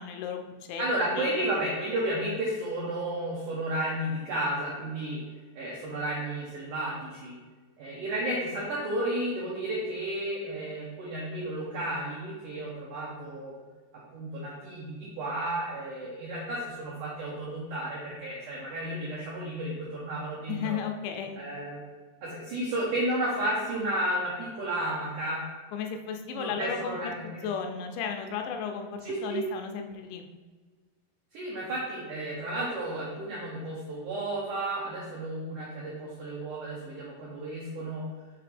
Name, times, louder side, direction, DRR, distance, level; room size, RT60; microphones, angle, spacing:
voice 1, 0.0-0.8 1.1-1.5 20.5-21.4 25.7-30.2, left 7 dB, 90° left, 4 dB, 2.9 m, -35 dB
voice 2, 0.8-5.2 5.5-7.4 7.8-13.5 14.1-20.8 21.4-21.8 22.2-25.4 26.3-27.5 29.0-29.4 31.3-38.0, right 1 dB, 80° right, -5 dB, 1.8 m, -32 dB
6.6 x 3.4 x 5.0 m, 1.4 s
omnidirectional pair, 4.9 m